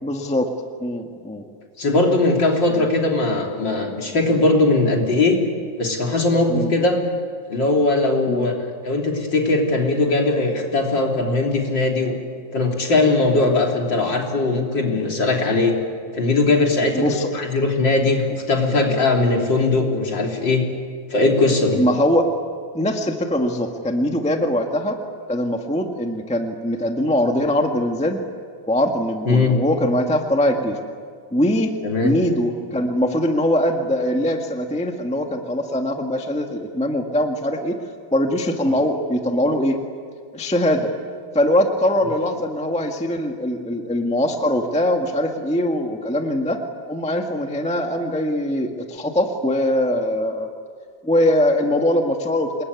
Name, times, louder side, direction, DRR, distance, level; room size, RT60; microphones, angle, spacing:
voice 1, 0.0-0.5 0.8-1.4 2.8-2.9 6.5-6.7 8.3-8.5 16.9-17.3 21.7-22.3 22.7-25.0 25.3-28.2 28.7-30.8 31.3-31.7 32.0-37.8 38.1-39.8 40.3-40.9 41.3-46.6 46.9-50.5 51.0-52.6, left 1 dB, 5° left, 3 dB, 0.7 m, -22 dB
voice 2, 1.8-5.4 5.8-7.0 7.5-8.5 8.8-12.1 12.5-15.8 16.1-20.6 21.1-21.8 29.3-29.6 31.8-32.1, left 2 dB, 40° left, 1 dB, 3.7 m, -19 dB
27.5 x 21.5 x 9.6 m, 2.1 s
omnidirectional pair, 3.4 m